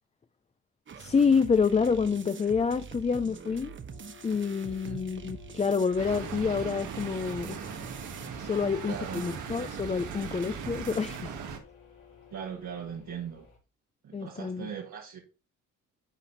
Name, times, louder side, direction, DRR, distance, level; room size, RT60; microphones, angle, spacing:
sound 1, 0.9-11.2, right 6 dB, 40° right, 1.0 m, -45 dB
voice 1, 1.0-3.7 4.2-7.8 8.4-11.3 14.1-14.7, left 5 dB, 20° left, 0.5 m, -28 dB
sound 2, 3.9-13.6, left 8 dB, 90° left, 4.4 m, -54 dB
sound 3, 6.0-11.6, right 6 dB, 85° right, 1.9 m, -39 dB
voice 2, 8.8-9.3 12.3-13.5 14.0-15.2, right 7 dB, 65° right, 1.8 m, -39 dB
11.0 x 4.1 x 4.1 m
cardioid pair, 90°, 30 cm